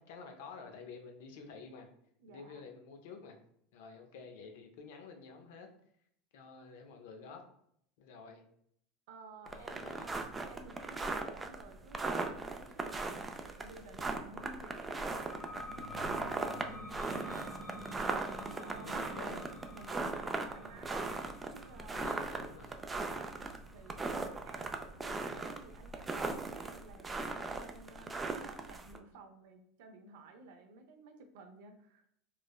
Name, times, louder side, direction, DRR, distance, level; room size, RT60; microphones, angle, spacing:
voice 1, 0.0-1.9 2.3-3.4 3.7-5.7 6.3-7.4 8.0-8.4 9.5-10.3 18.8-19.4 21.9-22.8, left 5 dB, 75° left, 4 dB, 0.5 m, -50 dB
voice 2, 2.2-2.6 9.1-10.1 10.5-18.0 18.4-21.1 21.5-22.2 23.0-23.3 23.7-32.0, right 3 dB, 75° right, 5 dB, 0.5 m, -54 dB
sound 1, 9.5-29.0, right 3 dB, 20° right, 0.3 m, -38 dB
sound 2, 14.9-26.2, left 1 dB, 15° left, 0.9 m, -49 dB
3.1 x 2.0 x 2.2 m, 0.69 s
hypercardioid pair, 100°, 0 cm